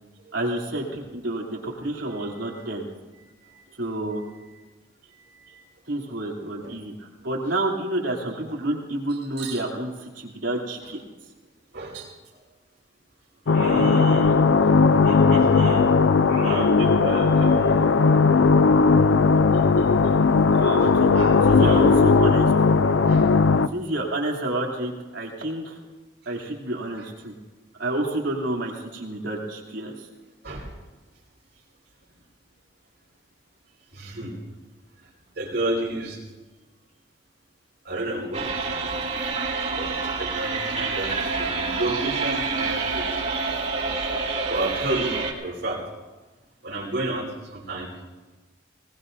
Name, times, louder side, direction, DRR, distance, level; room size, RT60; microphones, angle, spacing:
voice 1, 0.3-2.9 3.8-4.2 5.9-11.0 20.5-21.1 21.4-22.5 23.7-25.8 26.2-27.3 27.8-30.1, right 1 dB, 80° right, -2 dB, 3.2 m, -29 dB
voice 2, 5.2-5.6 6.6-6.8 7.4-7.5 9.1-9.6 11.7-12.4 13.4-14.4 15.0-16.0 16.3-17.8 19.5-19.9 21.1-22.2 23.0-23.3 27.0-27.1 30.4-30.7 33.9-34.4 35.3-36.2 37.8-38.9 39.7-43.3 44.5-45.8 46.6-47.9, right 2 dB, 60° right, -2 dB, 5.1 m, -31 dB
sound 1, 13.5-23.7, left 4 dB, 80° left, 0.5 m, -18 dB
sound 2, 38.3-45.3, right 4 dB, 35° right, 2.5 m, -27 dB
21.0 x 19.5 x 2.7 m, 1.2 s
head